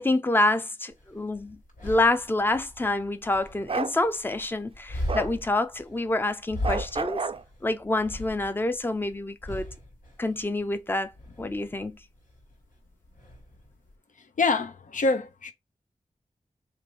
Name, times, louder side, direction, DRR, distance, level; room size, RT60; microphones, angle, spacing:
voice 1, 0.0-7.2 7.6-9.7 10.2-11.1 11.4-12.0, left 2 dB, 15° left, 0.5 m, -27 dB
sound 1, 0.9-14.0, left 1 dB, 85° left, 1.9 m, -39 dB
Bark, 3.7-3.9 5.1-5.3 6.6-7.4, right 4 dB, 40° right, 0.4 m, -30 dB
voice 2, 14.4-15.5, left 3 dB, 70° left, 0.6 m, -25 dB
3.2 x 2.5 x 4.1 m
cardioid pair, 50°, 14 cm